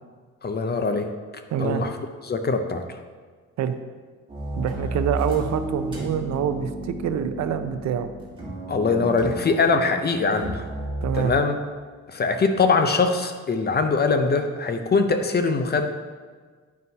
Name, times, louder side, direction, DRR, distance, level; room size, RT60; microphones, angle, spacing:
voice 1, 0.4-1.1 1.6-1.9 2.2-3.0 8.7-10.7 11.1-11.6 12.1-15.9, left 4 dB, 35° left, 7 dB, 0.7 m, -22 dB
voice 2, 1.5-1.8 3.6-3.7 4.5-8.1 11.0-11.3, right 8 dB, 65° right, 9 dB, 0.5 m, -26 dB
sound 1, 4.3-11.4, right 1 dB, 15° right, 1.9 m, -33 dB
9.4 x 5.3 x 2.8 m, 1.5 s
cardioid pair, 90°, 30 cm